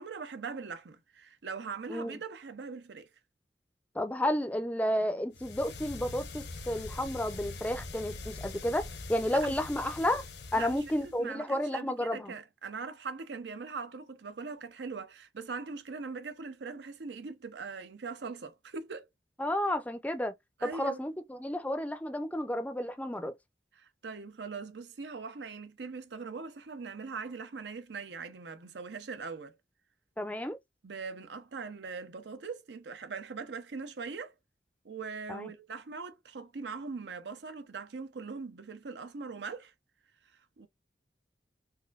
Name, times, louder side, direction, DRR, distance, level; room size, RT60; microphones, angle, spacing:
voice 1, 0.0-3.1 9.3-9.6 10.5-19.1 20.6-21.0 23.7-29.6 30.8-34.3 34.8-39.7 40.3-40.7, right 4 dB, 80° right, 0.6 m, -41 dB
voice 2, 4.0-10.2 10.5-12.4 19.4-20.3 20.6-23.3 30.2-30.6 35.3-35.5, left 1 dB, 10° left, 0.4 m, -31 dB
sound 1, 5.3-11.2, left 3 dB, 75° left, 0.8 m, -43 dB
4.0 x 2.5 x 2.4 m
head